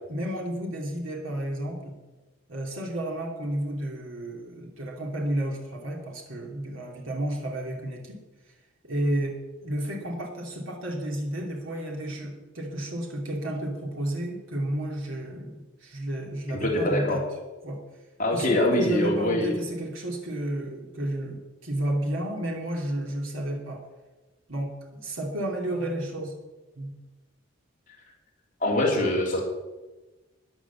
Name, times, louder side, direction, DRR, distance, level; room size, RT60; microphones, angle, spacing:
voice 1, 0.1-2.0 2.5-8.2 8.8-9.3 9.6-17.2 17.6-17.8 18.3-23.8 24.5-26.3 26.8-27.0, right 1 dB, 75° right, 0 dB, 2.7 m, -31 dB
voice 2, 16.6-17.2 18.2-19.5 28.6-29.4, left 1 dB, 40° left, -2 dB, 3.3 m, -24 dB
13.5 x 10.5 x 7.3 m, 1.2 s
head